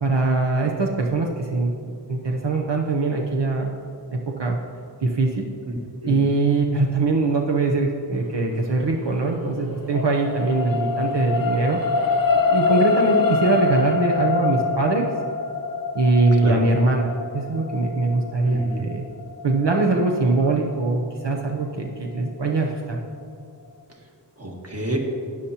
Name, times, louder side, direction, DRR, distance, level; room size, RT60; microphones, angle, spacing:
voice 1, 0.0-1.7 2.1-3.8 4.3-4.6 5.0-5.5 6.0-12.1 12.5-15.1 15.9-19.0 19.4-23.0, right 3 dB, 75° right, 1 dB, 0.8 m, -22 dB
voice 2, 6.0-6.4 16.3-16.7 18.4-18.9 23.9-24.1 24.4-25.0, right 1 dB, 35° right, 0 dB, 1.7 m, -30 dB
sound 1, 9.1-21.6 22.2-22.3, left 4 dB, 50° left, 0.7 m, -25 dB
12.5 x 9.9 x 2.9 m, 2.4 s
wide cardioid pair, 45°, 43 cm